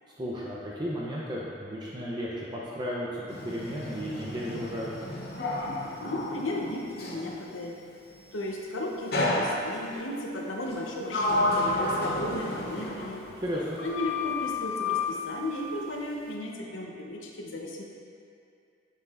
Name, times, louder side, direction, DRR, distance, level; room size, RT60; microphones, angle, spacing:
voice 1, 0.2-4.9 13.4-13.8, equal, 20° right, -6 dB, 0.6 m, -34 dB
Sliding door, 3.3-7.3 9.1-10.0 10.7-13.5 13.8-15.1, left 2 dB, 55° left, 0.8 m, -31 dB
voice 2, 6.0-7.8 8.3-13.3 13.8-17.8, left 1 dB, 85° left, 0 dB, 0.8 m, -35 dB
6.9 x 6.6 x 2.5 m, 2.5 s
head